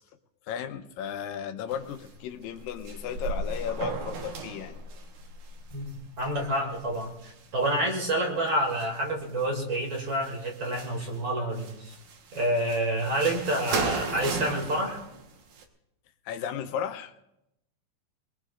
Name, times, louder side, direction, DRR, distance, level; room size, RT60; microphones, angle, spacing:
voice 1, 0.5-4.8 16.3-17.1, left 8 dB, 80° left, 7 dB, 2.6 m, -34 dB
sound 1, 1.7-2.2 2.4-7.9 8.5-9.4 9.7-11.2 11.5-15.6, right 3 dB, 65° right, 2.7 m, -36 dB
voice 2, 5.7-11.9 12.3-15.0, right 1 dB, 35° right, 0 dB, 3.0 m, -28 dB
22.5 x 22.0 x 2.6 m, 0.86 s
omnidirectional pair, 4.0 m